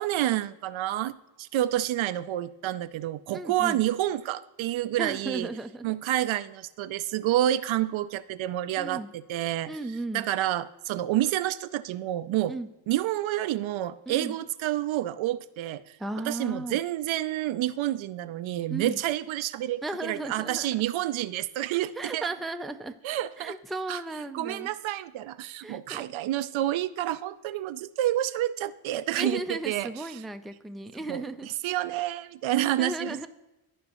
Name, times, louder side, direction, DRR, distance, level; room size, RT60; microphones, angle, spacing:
voice 1, 0.0-5.5 5.8-9.7 10.1-12.5 12.9-16.0 16.3-22.3 23.0-23.5 23.9-24.0 24.3-29.9 31.1-33.3, right 13 dB, 75° right, 14 dB, 0.5 m, -29 dB
voice 2, 3.3-3.8 5.0-5.9 8.8-9.1 9.7-10.3 12.5-12.7 14.1-14.4 16.0-16.8 18.7-19.0 19.8-20.7 21.9-22.9 23.4-24.7 25.6-26.0 29.1-31.5 32.8-33.3, right 2 dB, ahead, 7 dB, 0.4 m, -35 dB
14.5 x 5.2 x 3.0 m, 0.97 s
cardioid pair, 80°, 48 cm